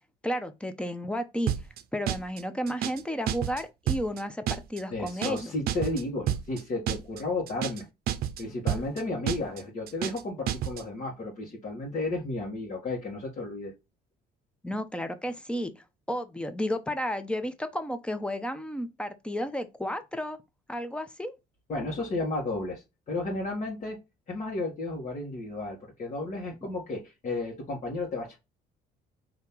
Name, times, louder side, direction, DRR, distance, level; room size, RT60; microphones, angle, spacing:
voice 1, 0.2-1.5 1.9-5.5 14.6-15.7 16.1-20.4 20.7-21.3, equal, 5° left, 0.7 m, -32 dB
sound 1, 1.5-1.8 2.1-2.4 2.7-3.0 3.3-3.6 3.9-4.2 4.5-4.8 5.1-5.4 5.7-6.0 6.3-6.6 6.9-7.2 7.5-7.8 8.1-8.4 8.7-9.0 9.3-9.6 9.9-10.2 10.5-10.8, right 11 dB, 65° right, 0.5 m, -30 dB
voice 2, 4.9-7.9 8.4-13.7 21.7-24.0 24.3-28.4, left 2 dB, 45° left, 1.5 m, -33 dB
4.3 x 2.9 x 3.6 m
cardioid pair, 110°, 17 cm